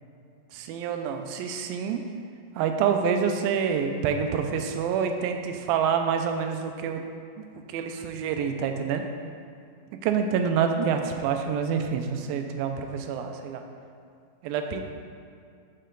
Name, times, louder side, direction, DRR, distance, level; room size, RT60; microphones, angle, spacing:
voice 1, 0.6-2.0 2.6-7.0 7.7-9.0 10.0-13.6 14.4-14.8, right 7 dB, 85° right, 6 dB, 2.3 m, -27 dB
6.5 x 6.4 x 3.9 m, 2.4 s
omnidirectional pair, 4.3 m